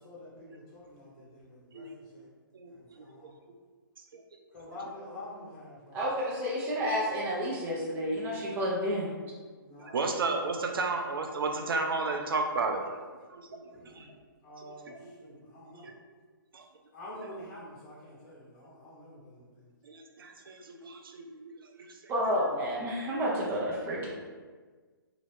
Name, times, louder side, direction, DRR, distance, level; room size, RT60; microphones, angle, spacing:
voice 1, 0.0-1.8 2.1-2.2 2.7-3.3 4.5-6.0 9.6-10.0 13.7-14.1 14.4-14.9 15.2-15.9 16.9-19.4, left 1 dB, 45° left, -6 dB, 1.4 m, -47 dB
voice 2, 5.9-9.1 22.1-24.1, equal, 15° right, -5 dB, 0.6 m, -30 dB
voice 3, 9.8-12.8 13.3-13.7 14.0-14.1 14.6-14.7 15.0-15.1 15.8-15.9 16.5-16.6 17.2-17.4 19.8-21.5 21.8-21.9, right 3 dB, 70° right, 4 dB, 0.5 m, -33 dB
2.8 x 2.4 x 3.3 m, 1.5 s
hypercardioid pair, 135°, 12 cm